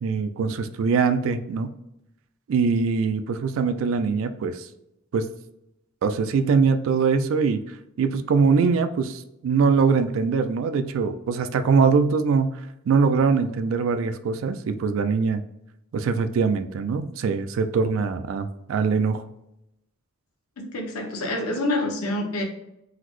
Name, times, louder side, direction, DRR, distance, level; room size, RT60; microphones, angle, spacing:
voice 1, 0.0-1.7 2.5-4.7 5.1-5.3 6.0-7.6 8.0-12.5 12.9-15.4 15.9-19.2, right 5 dB, 65° right, 9 dB, 0.3 m, -22 dB
voice 2, 20.6-22.4, left 1 dB, 90° left, 1 dB, 0.8 m, -27 dB
3.8 x 2.0 x 3.0 m, 0.86 s
head